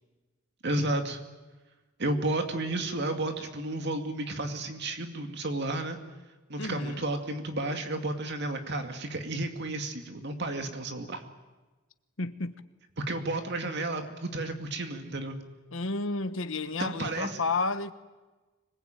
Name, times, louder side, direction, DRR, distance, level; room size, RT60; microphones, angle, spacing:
voice 1, 0.6-1.2 2.0-6.0 6.5-11.2 13.0-15.4 16.8-17.4, right 2 dB, 55° right, 2.3 m, -32 dB
voice 2, 6.6-7.0 12.2-12.5 15.7-17.9, left 3 dB, 65° left, 1.3 m, -31 dB
25.5 x 20.0 x 9.1 m
head